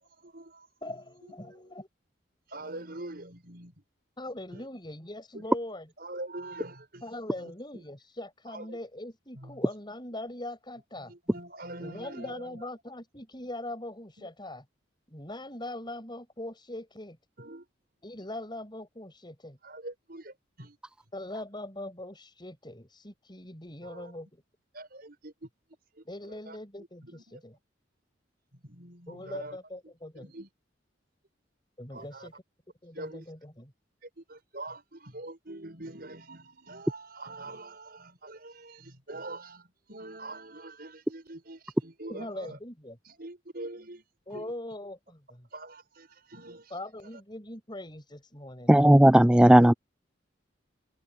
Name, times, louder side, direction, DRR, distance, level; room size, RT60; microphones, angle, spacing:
voice 1, 0.0-0.7 1.2-1.8 2.5-3.8 4.2-4.7 5.3-5.5 6.0-7.0 7.3-7.8 8.5-8.8 9.3-9.7 11.0-12.7 14.2-14.3 17.4-17.7 19.6-20.8 23.8-24.1 24.7-25.5 25.9-27.4 28.5-29.6 30.2-30.5 31.9-32.3 32.9-33.3 34.0-42.6 43.0-44.0 44.3-44.5 45.5-46.8 49.5-49.7, right 2 dB, 50° right, 7.1 m, -44 dB
voice 2, 0.8-1.9 4.2-5.9 7.0-11.1 11.8-14.6 15.1-17.2 18.0-19.6 21.1-24.4 26.0-27.5 29.1-30.3 31.8-32.3 32.8-33.7 42.1-43.0 44.3-45.5 46.7-48.7, left 1 dB, 25° left, 7.7 m, -41 dB
voice 3, 48.7-49.7, right 1 dB, 5° right, 0.3 m, -16 dB
head